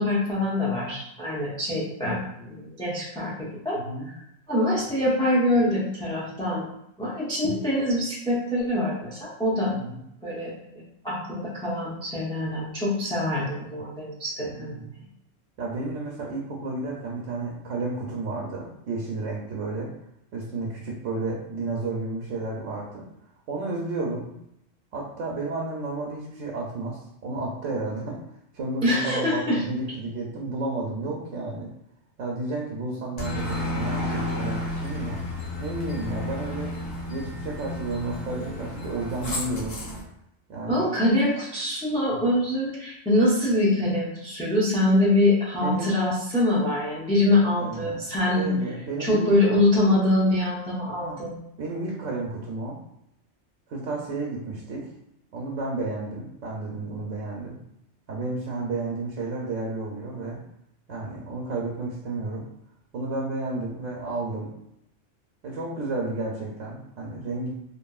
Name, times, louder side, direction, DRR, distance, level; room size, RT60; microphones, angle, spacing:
voice 1, 0.0-3.8 4.5-6.6 7.0-9.7 10.2-14.9 28.8-29.6 40.7-48.5 49.0-51.4, left 1 dB, 5° left, -6 dB, 0.4 m, -24 dB
voice 2, 3.8-4.1 9.7-10.0 14.4-14.9 15.6-19.9 20.3-23.1 23.5-24.3 24.9-28.2 28.5-31.7 32.2-35.2 35.6-36.7 37.1-39.8 40.5-40.9 45.6-46.0 47.6-48.0 48.3-49.3 51.0-51.2 51.6-52.8 53.7-54.9 55.3-57.6 58.1-60.4 60.9-62.5 62.9-64.5 65.4-67.5, right 2 dB, 90° right, -2 dB, 1.0 m, -32 dB
Aircraft, 33.2-40.0, left 1 dB, 85° left, 1.2 m, -32 dB
2.9 x 2.6 x 2.3 m, 0.79 s
omnidirectional pair, 1.3 m